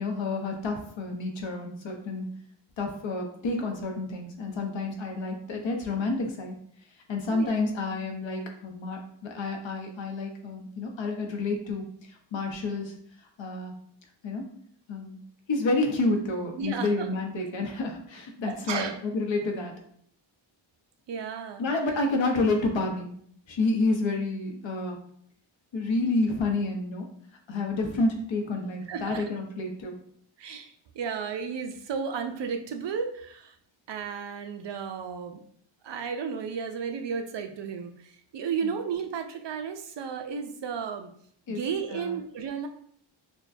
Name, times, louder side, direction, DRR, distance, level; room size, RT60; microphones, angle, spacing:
voice 1, 0.0-2.3 2.8-6.5 7.1-11.8 12.3-12.9 13.4-13.7 14.2-14.4 14.9-15.2 15.5-19.7 21.6-23.1 23.5-25.0 25.7-27.1 27.5-30.0 38.6-38.7 41.5-41.6 41.9-42.2, left 2 dB, 65° left, 2 dB, 0.9 m, -29 dB
voice 2, 16.6-17.1 18.5-19.0 21.1-21.7 28.9-29.3 30.4-33.5 33.9-35.4 35.8-41.1 41.5-42.7, right 6 dB, 60° right, 6 dB, 0.6 m, -33 dB
6.1 x 2.2 x 2.6 m, 0.63 s
wide cardioid pair, 125°, 48 cm